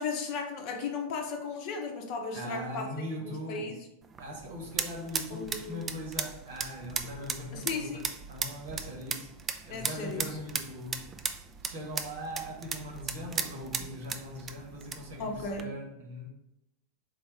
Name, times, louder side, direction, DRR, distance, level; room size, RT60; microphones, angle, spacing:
voice 1, 0.0-2.9 3.2-3.8 5.3-5.8 7.5-8.0 9.7-10.4 15.2-15.7, left 4 dB, 45° left, 3 dB, 0.7 m, -35 dB
voice 2, 2.3-3.7 4.2-9.3 9.6-11.1 11.6-16.3, equal, 60° right, 0 dB, 1.2 m, -40 dB
sound 1, 4.0-15.6, right 6 dB, 25° right, 0.3 m, -37 dB
3.8 x 2.6 x 4.7 m, 0.87 s
figure-of-eight pair, 90°, 0 cm